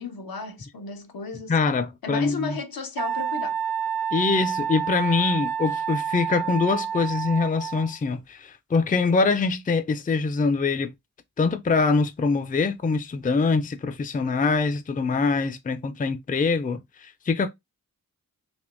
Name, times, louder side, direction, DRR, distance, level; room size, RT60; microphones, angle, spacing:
voice 1, 0.0-1.6 2.0-3.6, left 4 dB, 80° left, 0.7 m, -34 dB
voice 2, 1.5-2.6 4.1-10.9 11.4-17.5, left 4 dB, 25° left, 0.4 m, -24 dB
Wind instrument woodwind instrument, 3.0-8.0, right 8 dB, 80° right, 0.5 m, -29 dB
3.5 x 2.9 x 2.4 m
wide cardioid pair, 80°, 35 cm